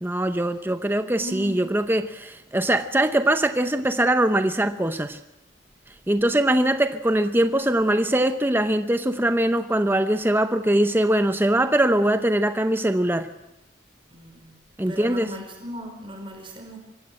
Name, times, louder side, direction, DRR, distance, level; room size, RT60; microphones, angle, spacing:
voice 1, 0.0-5.2 6.1-13.3 14.8-15.3, right 1 dB, 10° right, 9 dB, 0.7 m, -22 dB
voice 2, 1.2-1.6 14.1-14.5 14.9-16.8, equal, 30° right, 3 dB, 4.7 m, -37 dB
24.5 x 16.0 x 7.7 m, 0.92 s
head